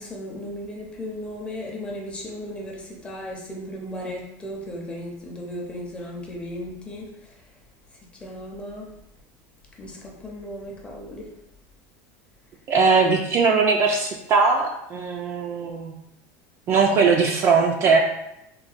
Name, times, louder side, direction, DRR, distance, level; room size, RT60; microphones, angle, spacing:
voice 1, 0.0-7.1 8.2-8.9 9.8-11.2, left 1 dB, 15° left, -2 dB, 0.6 m, -35 dB
voice 2, 12.7-15.9 16.7-18.0, right 4 dB, 35° right, 2 dB, 0.3 m, -20 dB
3.8 x 2.1 x 2.4 m, 0.81 s
supercardioid pair, 140°, 8 cm